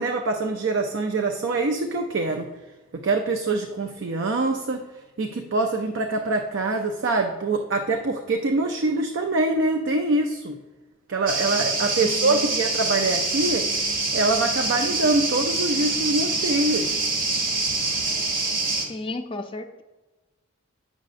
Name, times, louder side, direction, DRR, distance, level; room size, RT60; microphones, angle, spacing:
voice 1, 0.0-2.5 2.9-4.8 5.2-10.6 11.1-13.6 14.1-17.0, right 2 dB, 65° right, 4 dB, 0.4 m, -24 dB
sound 1, 11.3-18.9, right 3 dB, 45° right, 1.0 m, -25 dB
voice 2, 12.0-12.7 18.9-19.8, left 2 dB, 25° left, 5 dB, 0.4 m, -34 dB
8.5 x 6.4 x 2.5 m, 1.2 s
head